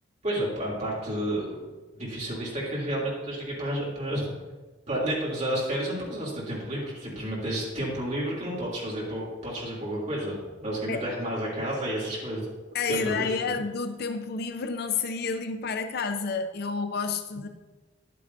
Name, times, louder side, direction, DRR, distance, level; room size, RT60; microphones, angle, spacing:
voice 1, 0.2-1.6 1.9-4.3 4.9-12.5 12.9-13.6, right 1 dB, 40° right, -5 dB, 2.8 m, -31 dB
voice 2, 12.7-17.5, left 4 dB, 60° left, 8 dB, 0.5 m, -30 dB
11.0 x 8.4 x 2.7 m, 1.3 s
head